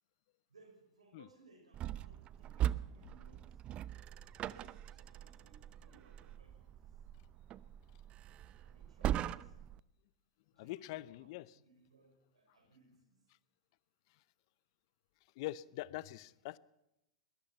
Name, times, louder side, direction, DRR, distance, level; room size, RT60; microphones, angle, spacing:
voice 1, 0.5-3.6 4.3-6.9 8.6-9.7 10.5-13.2, right 2 dB, 85° right, 5 dB, 6.0 m, -65 dB
sound 1, 1.7-9.8, right 12 dB, 35° right, 0.7 m, -41 dB
voice 2, 10.6-11.5 15.4-16.6, left 17 dB, 55° left, 20 dB, 0.7 m, -43 dB
22.0 x 20.5 x 5.7 m, 0.87 s
hypercardioid pair, 100°, 3 cm